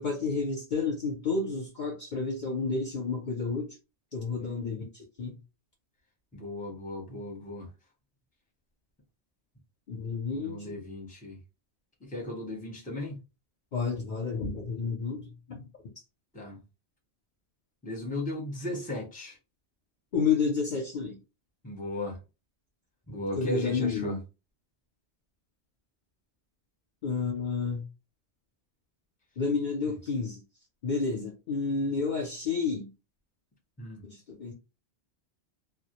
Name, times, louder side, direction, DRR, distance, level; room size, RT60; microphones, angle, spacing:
voice 1, 0.0-3.8 4.1-5.4 9.9-10.8 13.7-15.6 20.1-21.2 23.4-24.2 27.0-27.8 29.4-30.4 30.8-32.9 34.0-34.5, left 4 dB, 55° left, 0.6 m, -30 dB
voice 2, 6.3-7.7 10.3-11.4 12.0-13.2 16.3-16.6 17.8-19.4 21.6-22.2 23.1-24.2 29.8-29.9 33.8-34.0, left 1 dB, 10° left, 0.7 m, -36 dB
2.2 x 2.0 x 2.9 m
omnidirectional pair, 1.1 m